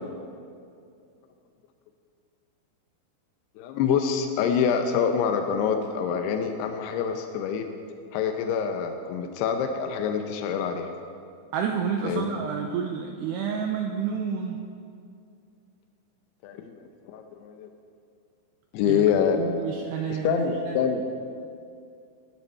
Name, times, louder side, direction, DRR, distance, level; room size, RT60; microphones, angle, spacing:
voice 1, 3.6-7.7 8.1-10.9 12.0-12.3 16.4-16.7 17.1-17.7 18.7-19.4 20.1-21.0, left 7 dB, 80° left, 5 dB, 2.4 m, -26 dB
voice 2, 11.5-14.6 18.9-19.1 19.4-20.8, right 7 dB, 80° right, 2 dB, 2.4 m, -29 dB
18.0 x 13.5 x 4.3 m, 2.4 s
omnidirectional pair, 5.6 m